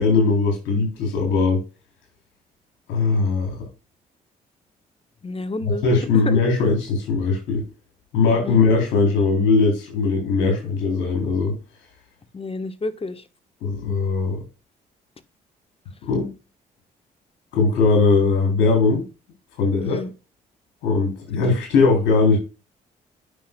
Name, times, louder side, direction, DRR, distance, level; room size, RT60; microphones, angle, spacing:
voice 1, 0.0-1.6 2.9-3.6 5.6-7.6 8.1-11.6 13.6-14.4 16.0-16.3 17.5-19.0 19.6-20.0 20.8-22.4, left 4 dB, 80° left, 3.6 m, -19 dB
voice 2, 5.2-5.8 6.3-6.4 8.4-8.6 12.3-13.2 19.8-20.1, left 3 dB, 30° left, 1.1 m, -29 dB
9.2 x 5.9 x 2.2 m
supercardioid pair, 55°, 19 cm